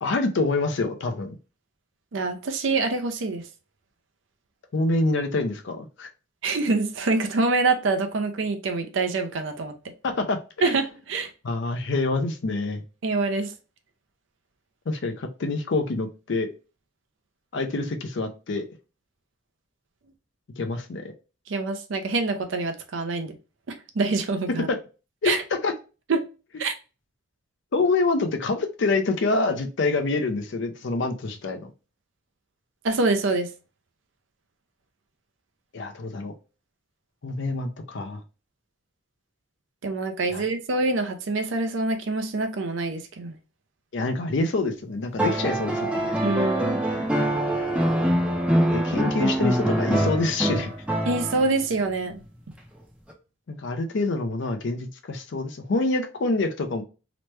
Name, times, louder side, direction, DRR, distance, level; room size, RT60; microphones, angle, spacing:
voice 1, 0.0-1.4 4.7-6.1 10.0-10.4 10.6-10.8 11.4-12.8 14.9-16.5 17.5-18.7 20.6-21.1 24.7-24.8 25.2-25.7 27.7-31.7 35.7-36.3 37.2-38.2 40.3-40.4 43.9-46.2 48.7-50.7 53.5-56.8, left 3 dB, 60° left, 0.5 m, -26 dB
voice 2, 2.1-3.4 6.4-9.7 10.6-11.3 13.0-13.5 21.5-23.3 23.9-24.7 25.2-25.4 26.1-26.2 26.6-26.7 32.8-33.5 39.8-43.4 46.2-46.8 51.1-52.2, right 3 dB, 65° right, 0.5 m, -25 dB
sound 1, 45.2-51.6 53.1-53.2, right 1 dB, 5° right, 0.5 m, -24 dB
3.0 x 2.1 x 3.1 m
head